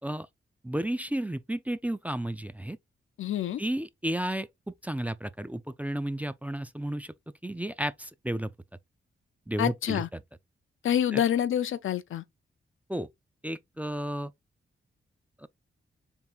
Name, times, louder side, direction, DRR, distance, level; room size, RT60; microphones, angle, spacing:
voice 1, 0.6-2.8 3.6-7.1 7.4-8.5 9.5-10.0 11.1-11.2 12.9-13.1 13.4-14.3 15.4-15.5, right 1 dB, 5° right, 0.4 m, -32 dB
voice 2, 3.2-3.6 9.6-10.1 10.8-12.2, left 10 dB, 75° left, 0.5 m, -27 dB
3.6 x 2.4 x 4.3 m
cardioid pair, 50°, 21 cm